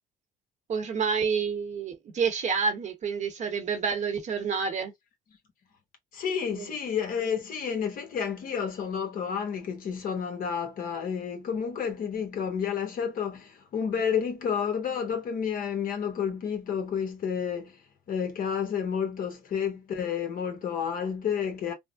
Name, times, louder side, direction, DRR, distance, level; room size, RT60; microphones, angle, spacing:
voice 1, 0.7-4.9 6.5-6.7, right 5 dB, 45° right, 0.9 m, -29 dB
voice 2, 6.1-17.8 18.1-21.7, left 7 dB, 55° left, 1.1 m, -30 dB
3.4 x 2.0 x 2.4 m
cardioid pair, 110°, 17 cm